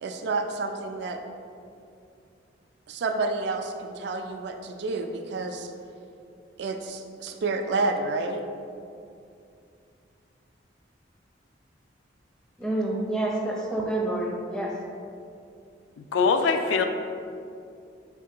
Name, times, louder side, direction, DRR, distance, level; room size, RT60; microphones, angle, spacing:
voice 1, 0.0-1.2 2.9-5.7 6.6-8.4, right 3 dB, 65° right, 5 dB, 0.3 m, -29 dB
voice 2, 12.6-14.7, right 1 dB, 5° left, -2 dB, 0.4 m, -28 dB
voice 3, 16.0-16.8, left 5 dB, 85° left, 7 dB, 0.3 m, -23 dB
4.4 x 2.7 x 3.7 m, 2.5 s
head